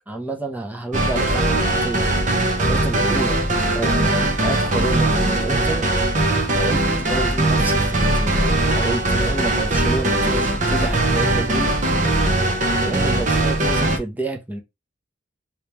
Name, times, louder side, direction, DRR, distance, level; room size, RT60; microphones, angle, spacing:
voice 1, 0.1-3.4 3.7-5.9 6.5-11.8 12.8-14.6, right 2 dB, 10° right, 0.7 m, -29 dB
sound 1, 0.9-14.0, right 2 dB, 40° right, 0.8 m, -20 dB
3.2 x 3.0 x 3.3 m
head